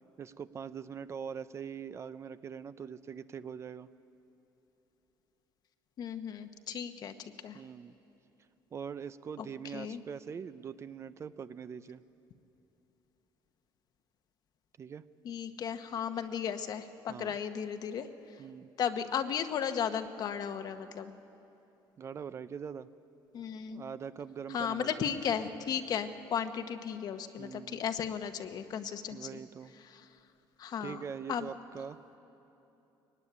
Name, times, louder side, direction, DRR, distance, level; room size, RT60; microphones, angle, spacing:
voice 1, 0.2-3.9 7.5-7.9 8.7-12.0 14.8-15.0 17.1-17.3 18.4-18.7 22.0-22.9 23.7-25.1 27.4-27.8 29.1-29.7 30.8-32.2, right 7 dB, 30° right, 14 dB, 0.5 m, -43 dB
voice 2, 6.0-7.6 9.4-9.5 9.7-10.0 15.2-18.1 18.8-21.1 23.3-23.8 24.5-29.4 29.8-30.0 30.6-31.0 31.3-31.5, left 8 dB, 50° left, 9 dB, 1.1 m, -35 dB
22.5 x 18.0 x 10.0 m, 3.0 s
cardioid pair, 135°, 9 cm